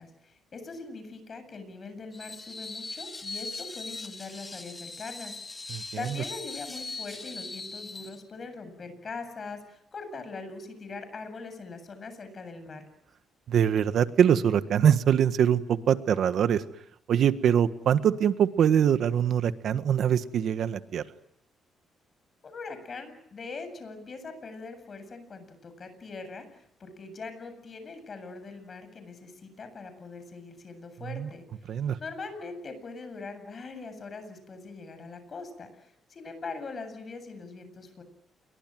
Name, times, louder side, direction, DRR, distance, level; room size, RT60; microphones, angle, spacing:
voice 1, 0.0-12.9 22.4-31.4 32.0-38.0, left 4 dB, 40° left, 10 dB, 7.9 m, -42 dB
Screech, 2.1-8.2, left 3 dB, 25° left, 2.7 m, -40 dB
voice 2, 13.5-16.6 17.1-21.0 31.1-31.3 31.7-32.0, right 9 dB, 65° right, 11 dB, 1.5 m, -23 dB
29.0 x 23.5 x 7.8 m, 0.74 s
cardioid pair, 90°, 0 cm